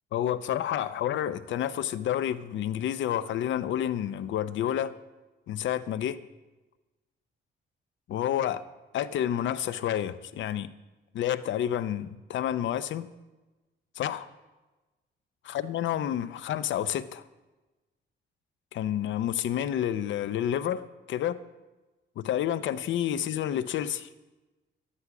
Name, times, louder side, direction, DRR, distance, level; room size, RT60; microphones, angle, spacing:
voice 1, 0.1-4.9 5.5-6.2 8.1-8.6 8.9-10.7 11.1-13.1 14.0-14.3 15.5-17.2 18.7-20.8 21.1-21.4 22.2-24.1, left 10 dB, 70° left, 0.6 m, -29 dB
11.5 x 9.9 x 5.9 m
cardioid pair, 90°, 20 cm